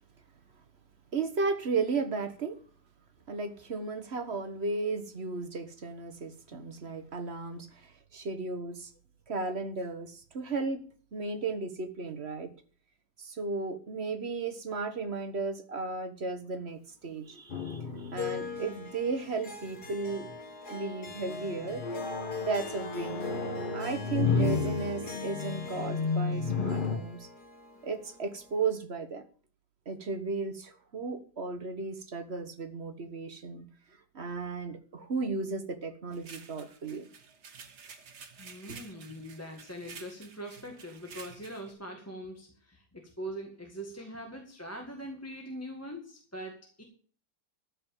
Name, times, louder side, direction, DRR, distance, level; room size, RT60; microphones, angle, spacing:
voice 1, 1.1-2.6 3.3-8.9 9.3-10.8 11.1-12.5 13.2-20.3 20.7-21.8 22.4-23.2 23.7-27.3 27.8-29.2 29.8-33.6 34.1-37.1 38.7-38.8, right 4 dB, 40° right, 9 dB, 1.4 m, -35 dB
sound 1, 17.5-19.3 19.8-20.3 21.1-27.0, left 4 dB, 35° left, 1.1 m, -32 dB
Harp, 18.2-28.7, left 4 dB, 65° left, 2.8 m, -42 dB
voice 2, 24.0-24.4 38.4-46.8, equal, 10° left, 2 dB, 1.6 m, -42 dB
sound 2, 36.1-41.7, right 6 dB, 70° right, 2.1 m, -50 dB
13.5 x 5.5 x 8.9 m, 0.43 s
omnidirectional pair, 1.8 m